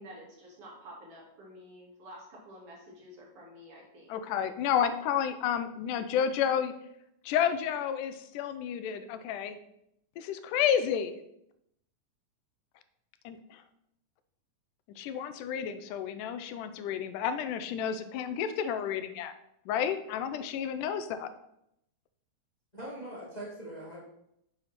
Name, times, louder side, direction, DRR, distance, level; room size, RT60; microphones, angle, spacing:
voice 1, 0.0-4.2, equal, 50° right, -4 dB, 2.7 m, -50 dB
voice 2, 4.1-6.7 7.3-9.6 10.2-11.1 13.3-13.4 15.0-19.3 19.7-21.3, left 8 dB, 90° left, 10 dB, 2.2 m, -31 dB
voice 3, 22.7-24.0, right 1 dB, 40° left, -5 dB, 0.5 m, -41 dB
7.4 x 4.9 x 4.2 m, 0.77 s
omnidirectional pair, 3.6 m